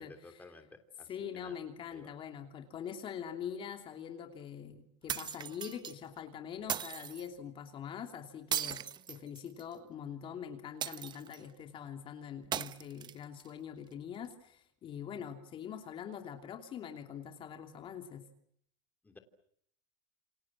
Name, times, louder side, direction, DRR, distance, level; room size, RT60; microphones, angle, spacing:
voice 1, 0.0-1.6 1.9-2.2 19.0-19.2, left 3 dB, 10° left, 6 dB, 3.2 m, -55 dB
voice 2, 1.1-18.3, left 8 dB, 35° left, 5 dB, 2.9 m, -44 dB
sound 1, 5.1-5.9 6.7-7.3 8.5-9.7 10.8-11.5 12.5-13.5, right 9 dB, 30° right, 1.1 m, -38 dB
29.0 x 26.0 x 7.5 m, 0.68 s
supercardioid pair, 130°, 16 cm